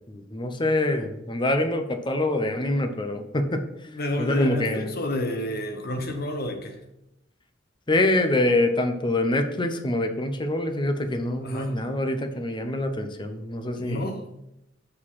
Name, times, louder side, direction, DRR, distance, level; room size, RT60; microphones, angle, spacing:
voice 1, 0.1-3.6 4.2-4.9 7.9-14.1, left 1 dB, 25° left, 6 dB, 0.7 m, -25 dB
voice 2, 3.9-6.8 11.4-11.7 13.8-14.2, left 1 dB, 55° left, 5 dB, 1.1 m, -30 dB
6.4 x 5.1 x 5.5 m, 0.85 s
head